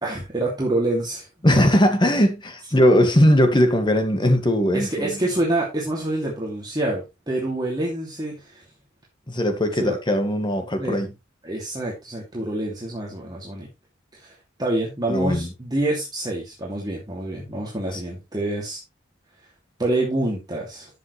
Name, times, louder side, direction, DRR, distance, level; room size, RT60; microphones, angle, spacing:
voice 1, 0.0-1.6 4.7-8.6 9.8-9.9 10.8-11.1 11.4-13.7 14.1-18.8 19.8-20.9, right 1 dB, 20° right, 2.8 m, -27 dB
voice 2, 1.4-5.2 9.3-11.1 15.1-15.5 17.9-18.0, equal, 25° left, 2.0 m, -19 dB
13.0 x 7.7 x 3.3 m
head